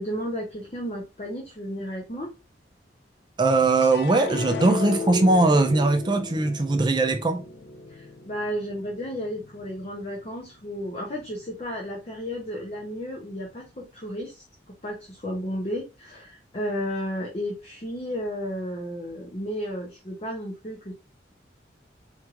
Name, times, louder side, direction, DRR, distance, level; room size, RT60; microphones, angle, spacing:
voice 1, 0.0-2.3 7.9-14.4 14.8-20.9, equal, 35° left, 0.7 m, -33 dB
voice 2, 3.4-7.4, right 2 dB, 25° right, 0.4 m, -20 dB
sound 1, 3.8-10.2 10.7-11.4, left 3 dB, 60° left, 0.4 m, -35 dB
4.4 x 3.1 x 2.4 m
head